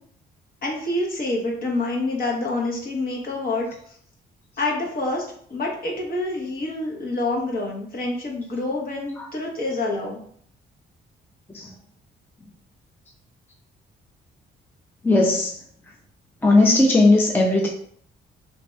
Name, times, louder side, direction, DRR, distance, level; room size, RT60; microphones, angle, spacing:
voice 1, 0.6-3.7 4.6-10.2, left 2 dB, 50° left, -1 dB, 1.0 m, -27 dB
voice 2, 15.0-15.5 16.4-17.7, left 2 dB, 10° left, 0 dB, 0.4 m, -17 dB
3.3 x 2.9 x 2.2 m, 0.63 s
cardioid pair, 90°, 20 cm